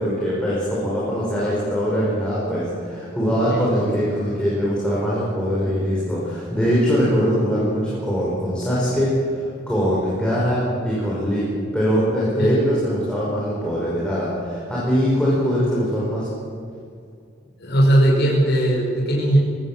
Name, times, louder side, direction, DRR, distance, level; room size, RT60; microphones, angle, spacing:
voice 1, 0.0-11.5 11.7-16.3, equal, 5° left, -7 dB, 5.3 m, -22 dB
voice 2, 17.6-19.4, right 1 dB, 55° left, -2 dB, 5.3 m, -18 dB
22.0 x 17.5 x 7.5 m, 2.3 s
head